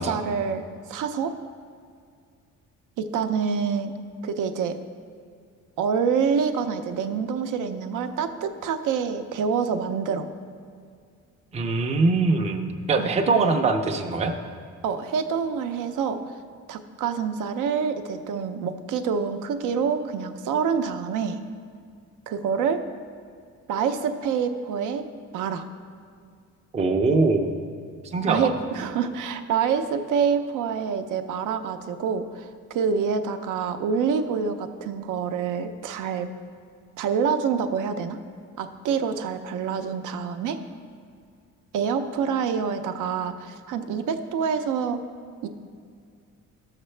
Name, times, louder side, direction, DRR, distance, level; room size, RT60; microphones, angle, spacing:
voice 1, 0.0-1.3 3.0-3.9 4.2-4.8 5.8-10.3 13.0-13.1 14.8-16.4 16.7-21.4 22.3-22.8 23.7-25.1 25.3-25.6 28.3-36.3 37.0-38.2 38.6-40.6 41.7-45.0 45.4-45.5, right 6 dB, 75° right, 8 dB, 0.6 m, -26 dB
voice 2, 11.5-14.3 26.7-27.5 28.0-28.5, right 3 dB, 20° right, 5 dB, 0.5 m, -22 dB
12.5 x 6.6 x 3.3 m, 2.3 s
cardioid pair, 160°, 32 cm